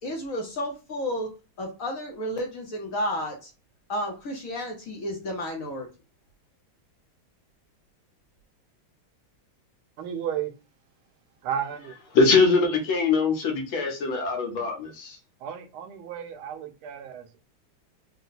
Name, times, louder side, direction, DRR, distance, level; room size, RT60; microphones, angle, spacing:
voice 1, 0.0-1.3 1.6-3.5 3.9-5.9, equal, 55° left, 1.0 m, -31 dB
voice 2, 10.0-10.5 11.4-12.0 15.4-17.4, right 9 dB, 85° right, 1.5 m, -33 dB
voice 3, 12.1-15.2, left 4 dB, 75° left, 1.7 m, -22 dB
4.2 x 2.2 x 3.9 m
omnidirectional pair, 2.3 m